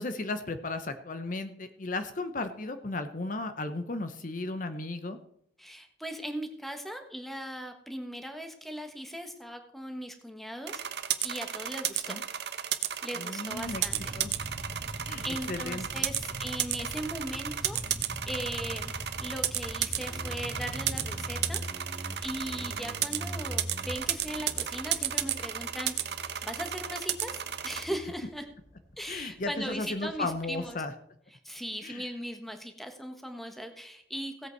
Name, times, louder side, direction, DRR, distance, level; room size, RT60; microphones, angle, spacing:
voice 1, 0.0-5.2 12.1-12.2 13.2-13.8 14.1-14.3 15.1-16.1 29.1-30.9 31.8-32.1, left 2 dB, 50° left, 9 dB, 0.9 m, -35 dB
voice 2, 5.6-10.8 11.2-12.2 13.0-14.2 15.2-18.9 19.2-21.6 21.9-25.9 26.4-28.5 29.0-30.8 31.4-34.5, equal, ahead, 6 dB, 1.3 m, -39 dB
sound 1, 10.7-27.8, right 10 dB, 70° right, 0.9 m, -33 dB
Motorcycle, 13.5-30.7, equal, 20° left, 2.3 m, -45 dB
sound 2, 13.5-21.5, equal, 15° right, 2.1 m, -42 dB
17.0 x 8.2 x 4.6 m, 0.67 s
head